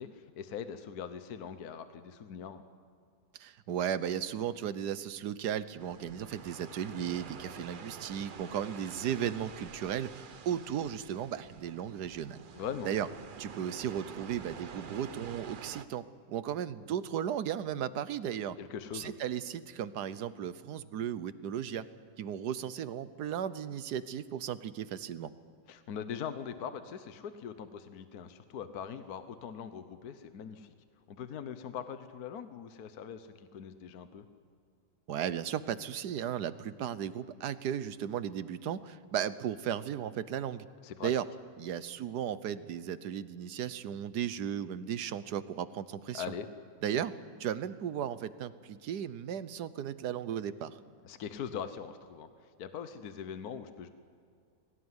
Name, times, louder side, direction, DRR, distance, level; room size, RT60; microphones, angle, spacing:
voice 1, 0.0-2.6 12.5-12.9 18.6-19.1 25.7-30.7 31.1-34.3 40.8-41.1 46.1-46.5 51.0-53.9, left 7 dB, 65° left, 10 dB, 1.4 m, -41 dB
voice 2, 3.4-12.5 12.8-13.1 13.4-18.6 18.9-21.8 22.2-25.3 35.1-40.7 41.0-41.2 41.6-46.2 46.8-47.1 47.4-50.8, right 9 dB, 70° right, 14 dB, 1.4 m, -35 dB
sound 1, 5.8-15.8, right 6 dB, 45° right, 0.6 m, -48 dB
22.5 x 17.5 x 9.7 m, 2.3 s
omnidirectional pair, 1.8 m